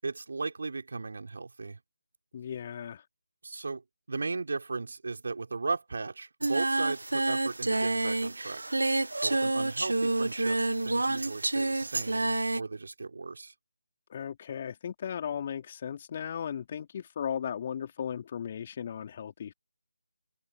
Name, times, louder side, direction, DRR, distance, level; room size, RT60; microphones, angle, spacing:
voice 1, 0.0-1.8 3.4-3.8 4.1-8.6 9.2-13.5, right 3 dB, 60° right, 6.0 m, -36 dB
voice 2, 2.3-3.0 14.1-19.5, left 8 dB, 35° left, 3.0 m, -36 dB
Singing, 6.4-12.6, right 2 dB, 80° right, 1.1 m, -28 dB
open air
figure-of-eight pair, 155°, 0 cm